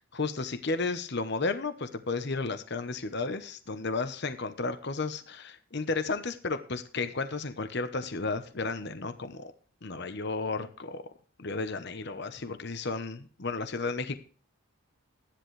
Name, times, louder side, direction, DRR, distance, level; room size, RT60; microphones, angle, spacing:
voice 1, 0.0-9.5 9.8-11.0 11.4-14.2, left 3 dB, 50° left, 9 dB, 0.9 m, -33 dB
13.0 x 10.5 x 3.2 m, 0.40 s
head